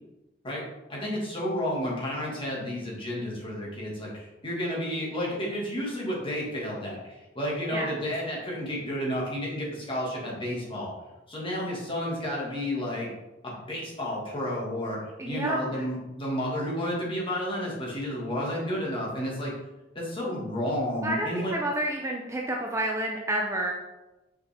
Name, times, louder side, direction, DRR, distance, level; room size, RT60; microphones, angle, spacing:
voice 1, 0.9-10.9 11.3-13.1 13.4-19.5 19.9-21.5, equal, 30° left, -4 dB, 1.8 m, -31 dB
voice 2, 15.2-15.8 21.0-23.7, right 1 dB, 15° right, -1 dB, 0.5 m, -29 dB
5.7 x 5.3 x 3.4 m, 1.0 s
head